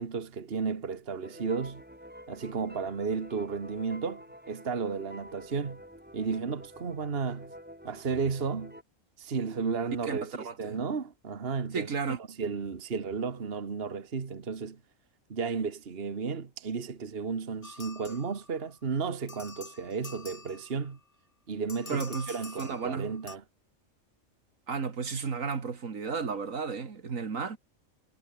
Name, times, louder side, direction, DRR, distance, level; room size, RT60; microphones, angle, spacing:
voice 1, 0.0-1.8 2.3-5.8 6.1-7.5 7.8-8.7 9.2-14.8 15.3-21.0 21.5-23.4, right 5 dB, 45° right, 1.7 m, -33 dB
sound 1, 1.2-8.8, equal, 5° right, 7.6 m, -49 dB
voice 2, 10.1-10.8 11.7-12.2 21.9-23.1 24.7-27.6, right 5 dB, 70° right, 2.3 m, -33 dB
sound 2, 17.6-18.8 19.3-21.0 21.7-23.4, left 4 dB, 25° left, 1.3 m, -47 dB
omnidirectional pair, 1.4 m